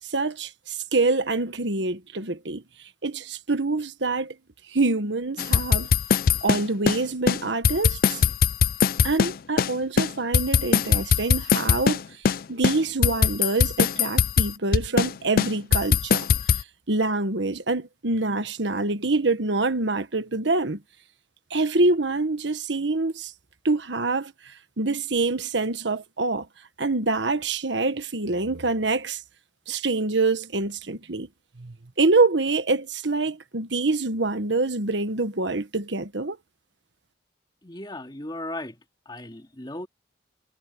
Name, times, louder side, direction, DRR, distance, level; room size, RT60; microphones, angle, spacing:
voice 1, 0.0-4.3 4.7-5.9 6.4-8.2 9.0-12.0 12.5-16.3 16.9-20.8 21.5-23.3 23.6-26.5 26.8-29.2 29.7-31.3 31.6-36.4, right 3 dB, 80° right, 1.5 m, -25 dB
sound 1, 5.4-7.0 7.3-7.4 7.6-9.7 10.0-12.0 12.2-12.4 12.6-15.1 15.4-16.6, left 6 dB, 50° left, 0.4 m, -21 dB
voice 2, 37.6-38.8 39.1-39.9, left 1 dB, 25° left, 2.3 m, -36 dB
head